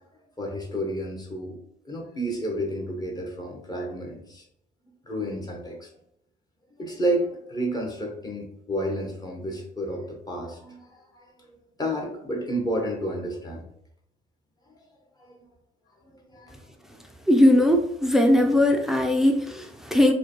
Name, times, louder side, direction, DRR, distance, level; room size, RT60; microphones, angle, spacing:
voice 1, 0.4-1.6 1.8-4.4 5.0-5.9 6.8-11.5 11.8-13.7 14.7-14.8 15.2-15.4 16.0-16.7, right 1 dB, 25° left, 0 dB, 1.0 m, -31 dB
voice 2, 17.3-20.1, left 1 dB, ahead, 4 dB, 0.4 m, -19 dB
4.6 x 2.2 x 3.0 m, 0.75 s
cardioid pair, 110°, 17 cm